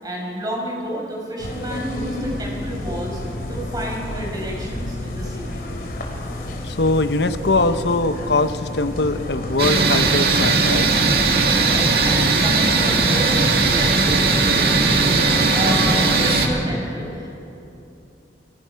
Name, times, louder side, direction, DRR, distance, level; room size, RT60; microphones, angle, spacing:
voice 1, 0.0-3.2 3.5-5.5 11.6-17.3, equal, 20° right, -1 dB, 5.5 m, -30 dB
sound 1, 1.4-16.6, left 1 dB, 55° left, 3.6 m, -30 dB
voice 2, 6.6-10.9, left 2 dB, 75° left, 10 dB, 1.0 m, -21 dB
sound 2, 9.6-16.5, right 4 dB, 60° right, 2.2 m, -18 dB
28.5 x 21.0 x 5.8 m, 2.8 s
head